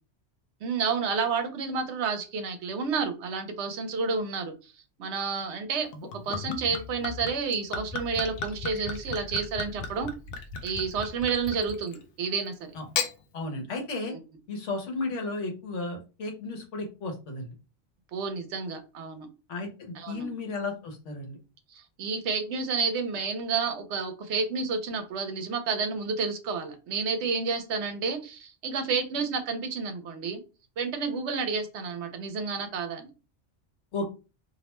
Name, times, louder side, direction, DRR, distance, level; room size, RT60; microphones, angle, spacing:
voice 1, 0.6-4.5 5.0-5.9 6.2-10.1 10.6-12.7 14.1-14.2 18.1-19.3 19.9-20.3 21.7-30.4 30.8-33.1, right 5 dB, 75° right, 7 dB, 0.8 m, -30 dB
Gurgling / Chink clink / Liquid, 5.9-12.1 12.7-13.1, left 5 dB, 60° left, 0.7 m, -35 dB
voice 2, 13.3-14.1 14.5-17.5 19.5-21.4 33.9-34.1, left 3 dB, 80° left, 3 dB, 1.1 m, -34 dB
2.5 x 2.1 x 3.0 m, 0.31 s
omnidirectional pair, 1.2 m